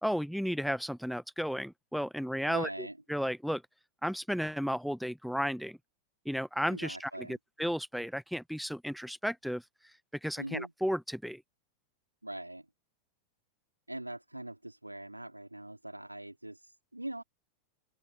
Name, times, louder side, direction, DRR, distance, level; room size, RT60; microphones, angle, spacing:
voice 1, 0.0-3.6 4.0-5.8 6.2-9.6 10.2-11.4, equal, ahead, 1.2 m, -34 dB
voice 2, 2.5-3.0 6.7-7.4 10.4-10.7 12.2-12.7 13.9-17.2, right 1 dB, 85° right, 4.2 m, -42 dB
open air
figure-of-eight pair, 90°, 0 cm